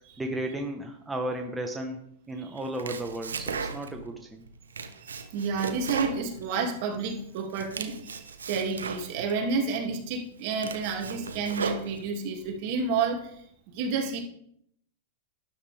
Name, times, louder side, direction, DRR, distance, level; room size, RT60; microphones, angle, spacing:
voice 1, 0.2-2.0 2.3-4.4, right 1 dB, 10° right, 2 dB, 1.3 m, -34 dB
Domestic sounds home sounds, 2.6-4.1 4.5-7.0 7.4-9.4 9.9-10.0 10.4-12.3, right 5 dB, 85° right, 1.2 m, -36 dB
voice 2, 5.0-13.4 13.7-14.2, right 4 dB, 50° right, 2 dB, 2.7 m, -30 dB
12.5 x 10.0 x 3.6 m, 0.70 s
hypercardioid pair, 110°, 0 cm